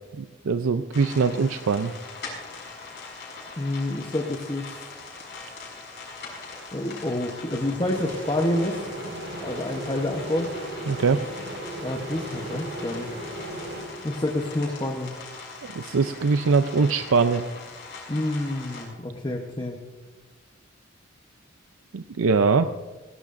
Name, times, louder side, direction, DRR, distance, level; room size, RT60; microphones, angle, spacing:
voice 1, 0.2-1.9 10.9-11.2 15.8-17.4 21.9-22.7, right 4 dB, 85° right, 9 dB, 0.5 m, -22 dB
sound 1, 0.9-18.8, left 4 dB, 55° left, 5.9 m, -41 dB
voice 2, 3.6-4.9 6.7-8.9 9.4-10.5 11.8-13.1 14.0-15.2 18.1-19.8, left 1 dB, 20° left, 2 dB, 0.9 m, -28 dB
sound 2, 7.8-14.5, right 1 dB, 65° right, 5.1 m, -36 dB
21.0 x 17.5 x 2.6 m, 1.2 s
head